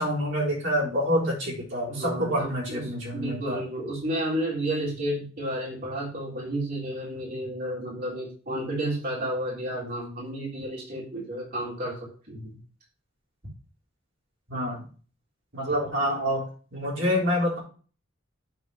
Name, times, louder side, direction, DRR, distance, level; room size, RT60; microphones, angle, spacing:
voice 1, 0.0-3.6 14.5-14.8 15.5-16.4 16.7-17.6, equal, 65° right, -6 dB, 3.6 m, -27 dB
voice 2, 1.9-2.8 3.1-11.9 12.3-12.6, right 1 dB, 50° right, -5 dB, 3.5 m, -31 dB
8.2 x 4.1 x 5.3 m, 0.40 s
head